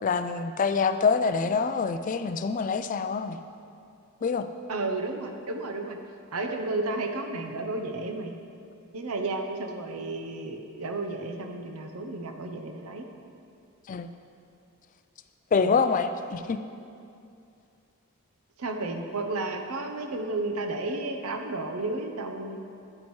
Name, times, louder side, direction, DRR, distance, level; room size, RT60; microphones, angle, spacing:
voice 1, 0.0-3.4 4.2-4.5 13.9-14.1 15.5-16.6, left 5 dB, 35° left, 10 dB, 0.3 m, -25 dB
voice 2, 4.7-6.0 6.3-8.3 8.9-13.1 15.6-15.8 18.6-22.6, right 2 dB, 80° right, 4 dB, 0.8 m, -32 dB
9.8 x 9.5 x 3.2 m, 2.5 s
head